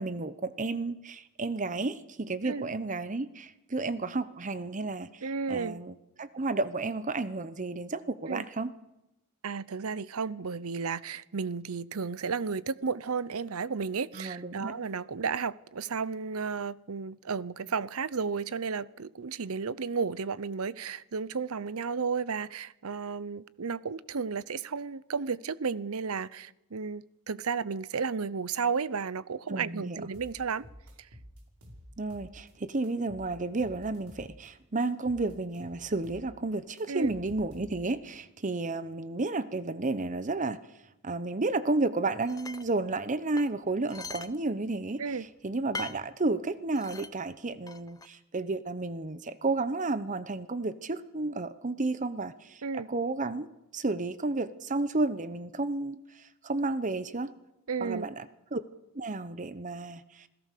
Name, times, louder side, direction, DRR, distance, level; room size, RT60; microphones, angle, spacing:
voice 1, 0.0-8.7 14.1-14.7 29.5-30.0 32.0-40.6 41.0-53.5 53.7-57.3 57.8-58.3 58.5-58.6 58.9-60.3, right 3 dB, 35° right, 0.9 m, -32 dB
voice 2, 5.2-5.8 8.3-8.4 9.4-30.7 36.9-37.1 45.0-45.3 52.6-52.9 57.7-58.1, right 5 dB, 75° right, 0.7 m, -33 dB
sound 1, 30.1-32.5 32.8-34.5 34.8-38.0, equal, 90° right, 5.3 m, -51 dB
sound 2, 42.3-42.7 43.4-44.3 44.7-44.8 45.7-46.0 46.7-47.1 47.7-48.1, left 3 dB, 15° left, 0.8 m, -41 dB
27.0 x 17.0 x 6.7 m
head